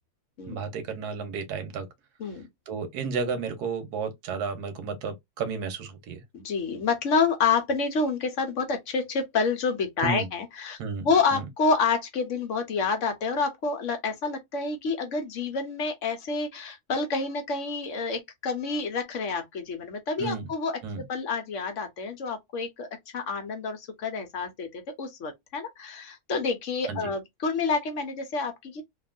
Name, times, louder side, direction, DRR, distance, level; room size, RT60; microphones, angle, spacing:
voice 1, 0.5-1.9 2.7-6.2 10.0-10.3 10.8-11.4 20.2-20.5 20.8-21.0 26.9-27.1, right 5 dB, 85° right, 1.4 m, -32 dB
voice 2, 6.3-10.8 11.0-20.8 21.1-28.8, left 4 dB, 60° left, 1.0 m, -28 dB
2.9 x 2.6 x 2.4 m
omnidirectional pair, 1.6 m